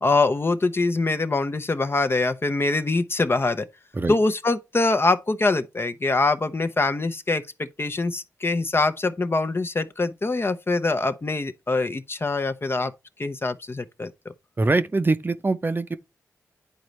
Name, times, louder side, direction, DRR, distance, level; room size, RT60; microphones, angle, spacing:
voice 1, 0.0-3.7 4.1-12.9 13.2-14.1, left 3 dB, 40° left, 0.7 m, -24 dB
voice 2, 14.6-16.0, right 3 dB, 35° right, 0.6 m, -23 dB
10.5 x 4.0 x 3.2 m
cardioid pair, 45°, 6 cm